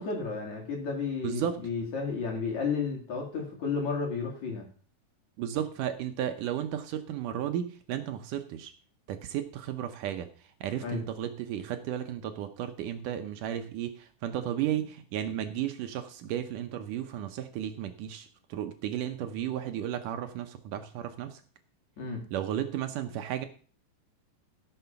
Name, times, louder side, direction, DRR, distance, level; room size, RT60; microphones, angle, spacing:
voice 1, 0.0-4.7 10.8-11.0 22.0-22.3, left 5 dB, 55° left, 0 dB, 3.4 m, -32 dB
voice 2, 1.2-1.6 5.4-8.7 9.1-10.3 10.6-21.4 22.3-23.5, right 10 dB, 70° right, 8 dB, 2.2 m, -34 dB
16.0 x 6.7 x 5.8 m, 0.42 s
omnidirectional pair, 4.3 m